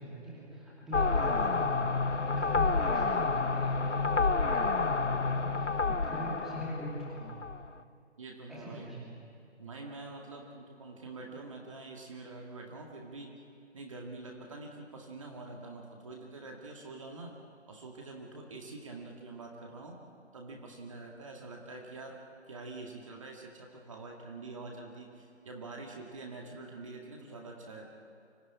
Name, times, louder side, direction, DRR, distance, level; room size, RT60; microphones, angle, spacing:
voice 1, 0.0-7.3 8.5-9.2, equal, ahead, -7 dB, 2.7 m, -41 dB
sound 1, 0.9-7.7, left 4 dB, 85° left, 1.0 m, -29 dB
voice 2, 8.2-9.0 9.6-13.3 13.7-17.3 17.7-20.0 20.3-22.2 22.5-27.9, right 3 dB, 25° right, 0 dB, 2.1 m, -45 dB
24.5 x 16.5 x 9.6 m, 2.4 s
figure-of-eight pair, 155°, 35 cm